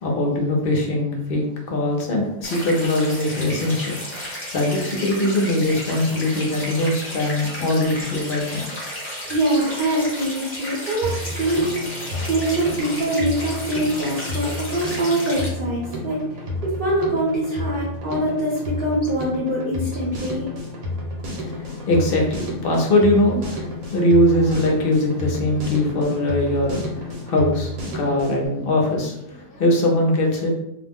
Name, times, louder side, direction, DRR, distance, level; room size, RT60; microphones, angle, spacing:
voice 1, 0.0-4.0 4.5-8.7 21.5-30.5, left 1 dB, 55° left, -1 dB, 0.6 m, -21 dB
sound 1, 2.4-15.5, equal, 10° left, 0.8 m, -33 dB
voice 2, 9.3-11.8 12.1-16.2 16.6-20.5, right 1 dB, 50° right, -5 dB, 0.7 m, -24 dB
Drum kit, 11.0-28.5, left 1 dB, 75° right, 1.1 m, -31 dB
2.5 x 2.0 x 3.4 m, 0.80 s
omnidirectional pair, 1.5 m